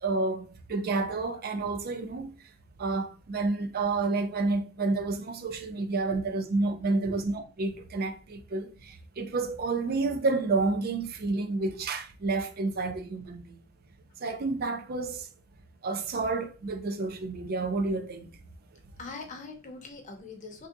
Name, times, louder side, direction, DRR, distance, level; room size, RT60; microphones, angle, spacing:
voice 1, 0.0-2.3 2.8-8.7 9.2-13.4 14.2-15.2 15.8-18.2, right 3 dB, 50° right, 0.5 m, -29 dB
voice 2, 6.9-7.2 19.0-20.7, left 3 dB, 40° left, 0.7 m, -42 dB
3.4 x 2.7 x 2.5 m
head